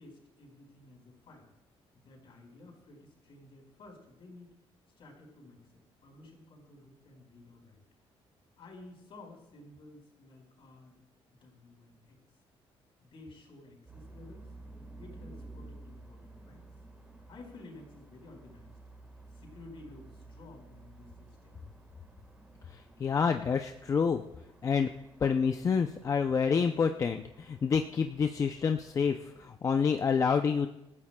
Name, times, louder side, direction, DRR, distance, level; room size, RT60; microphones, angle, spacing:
voice 1, 0.0-1.5 1.9-4.5 5.0-7.8 8.6-11.0 11.3-12.2 13.0-14.5 15.0-16.6 17.3-18.7 19.3-21.6, left 2 dB, 55° left, 1 dB, 4.5 m, -53 dB
sound 1, 13.9-29.5, right 2 dB, 10° right, 1.5 m, -53 dB
voice 2, 23.0-24.2 24.6-24.9 25.2-30.7, left 6 dB, 30° left, 6 dB, 0.5 m, -28 dB
26.0 x 14.0 x 2.2 m, 0.92 s
cardioid pair, 160°, 11 cm